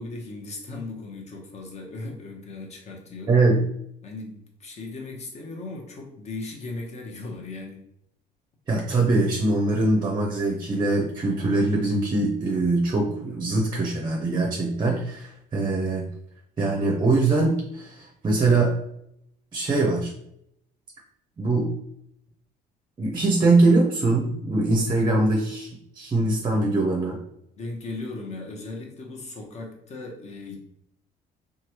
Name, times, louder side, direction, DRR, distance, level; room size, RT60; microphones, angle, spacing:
voice 1, 0.0-3.4 4.0-7.8 27.5-30.6, left 2 dB, 40° left, 1 dB, 0.8 m, -37 dB
voice 2, 3.3-3.6 8.7-16.1 16.6-18.7 19.5-20.1 21.4-21.7 23.0-25.7 25.9-27.2, right 2 dB, 25° right, 0 dB, 0.6 m, -22 dB
3.0 x 2.3 x 2.9 m, 0.74 s
cardioid pair, 110°, 17 cm